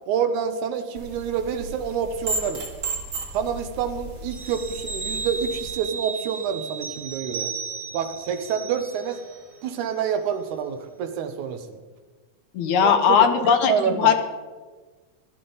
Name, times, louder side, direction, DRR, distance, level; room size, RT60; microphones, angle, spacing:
voice 1, 0.1-2.6 3.3-7.5 7.9-9.2 9.6-11.8 12.8-14.1, right 7 dB, 75° right, 8 dB, 2.3 m, -27 dB
sound 1, 0.9-5.8, right 3 dB, 45° right, 1.8 m, -34 dB
sound 2, 4.3-9.4 9.7-9.9, right 5 dB, 20° right, 0.9 m, -34 dB
voice 2, 12.5-13.7 14.0-14.1, left 7 dB, 75° left, 6 dB, 2.3 m, -18 dB
16.5 x 12.0 x 3.9 m, 1.4 s
omnidirectional pair, 3.5 m